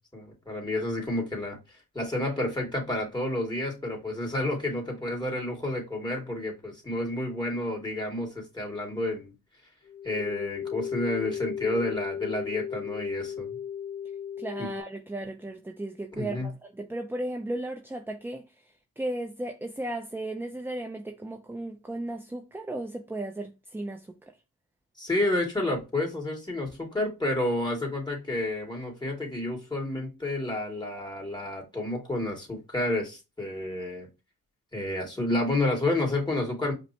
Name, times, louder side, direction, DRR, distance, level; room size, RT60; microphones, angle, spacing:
voice 1, 0.1-1.6 1.9-9.3 10.0-13.5 14.6-14.7 16.2-16.5 25.0-34.1 34.7-36.7, left 1 dB, 10° left, 2.3 m, -30 dB
sound 1, 9.9-14.8, left 8 dB, 35° left, 1.3 m, -35 dB
voice 2, 14.4-18.4 19.0-24.3, right 1 dB, 5° right, 0.5 m, -35 dB
5.0 x 2.2 x 2.8 m
supercardioid pair, 55°, 42 cm